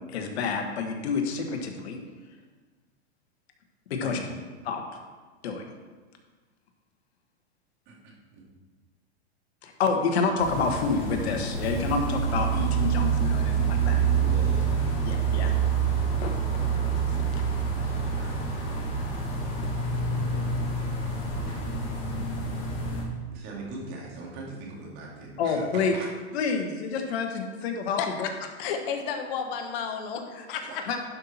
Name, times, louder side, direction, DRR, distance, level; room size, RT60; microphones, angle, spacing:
voice 1, 0.1-2.0 3.9-4.2 4.6-4.8 5.4-5.6 9.6-14.0 15.0-15.5 16.2-16.4 17.3-17.4 25.4-25.9 26.3-28.3 30.3-30.4 30.9-31.0, left 4 dB, 70° left, 4 dB, 1.5 m, -28 dB
voice 2, 7.9-8.5 14.1-14.9 17.7-18.4 19.0-19.7 20.0-20.8 21.1-21.6 23.3-26.1 30.7-30.8, right 3 dB, 50° right, -3 dB, 3.0 m, -43 dB
sound 1, 10.4-23.0, right 5 dB, 35° left, 2.9 m, -27 dB
voice 3, 28.4-30.8, left 7 dB, 55° left, 5 dB, 1.3 m, -32 dB
11.0 x 5.7 x 4.4 m, 1.4 s
hypercardioid pair, 130°, 33 cm